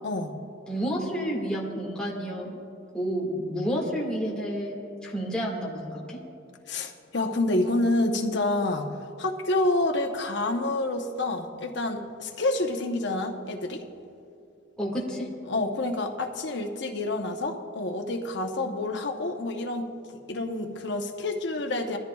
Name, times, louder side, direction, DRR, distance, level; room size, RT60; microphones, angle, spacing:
voice 1, 0.0-0.3 6.7-8.9 9.2-13.8 15.5-19.9 20.3-22.0, left 2 dB, 65° left, 4 dB, 0.9 m, -28 dB
voice 2, 0.7-2.6 2.9-4.8 5.0-6.2 14.8-15.3, equal, 5° left, -4 dB, 1.8 m, -30 dB
21.0 x 13.5 x 2.3 m, 2.5 s
head